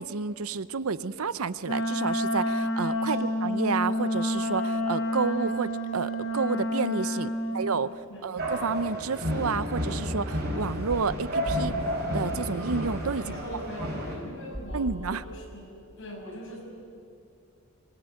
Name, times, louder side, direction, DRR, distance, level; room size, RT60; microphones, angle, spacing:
voice 1, 0.0-11.8 12.1-13.2 14.7-15.2, right 5 dB, 75° right, 16 dB, 0.7 m, -30 dB
Wind instrument woodwind instrument, 1.6-7.7, equal, 75° left, 4.6 m, -29 dB
voice 2, 7.3-8.5 13.2-16.6, equal, 55° left, -2 dB, 7.8 m, -42 dB
sound 1, 8.4-14.1, equal, 45° right, 5.9 m, -31 dB
sound 2, 10.9-11.1 11.5-11.7 12.9-13.5 14.5-15.1, equal, 5° left, 4.2 m, -37 dB
25.0 x 20.5 x 9.2 m, 2.5 s
head